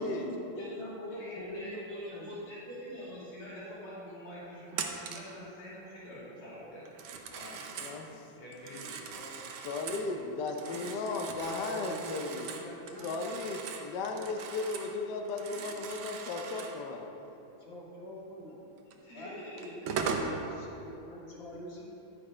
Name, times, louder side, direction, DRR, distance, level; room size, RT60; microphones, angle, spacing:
voice 1, 0.0-2.4 9.1-9.7 10.6-11.0 11.5-12.1 12.4-13.2 17.6-18.6 19.1-21.9, equal, 35° left, -3 dB, 1.3 m, -44 dB
voice 2, 1.1-6.9 7.2-9.2 19.0-19.9, equal, 85° left, -7 dB, 3.1 m, -46 dB
Telephone, 4.7-5.3 6.9-8.0 8.5-10.1 10.5-15.0 15.2-16.8 18.9-19.0 19.6-20.3, right 6 dB, 80° right, 1.5 m, -40 dB
voice 3, 9.6-12.5 13.0-17.1, left 3 dB, 65° left, 3 dB, 1.1 m, -35 dB
11.0 x 5.4 x 4.9 m, 3.0 s
omnidirectional pair, 2.3 m